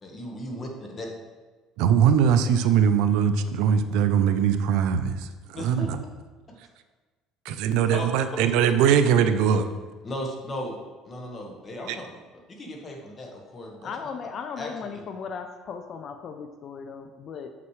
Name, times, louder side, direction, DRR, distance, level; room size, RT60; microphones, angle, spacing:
voice 1, 0.0-1.1 5.5-5.9 7.5-8.1 10.0-10.8 11.0-12.1 12.5-14.1 14.6-15.0, left 1 dB, 30° left, 1 dB, 1.3 m, -36 dB
voice 2, 1.8-6.0 7.4-9.7 11.9-12.0, right 8 dB, 75° right, 10 dB, 0.4 m, -21 dB
voice 3, 13.8-17.5, left 6 dB, 45° left, 7 dB, 0.4 m, -37 dB
7.3 x 5.8 x 3.1 m, 1.3 s
cardioid pair, 120°, 0 cm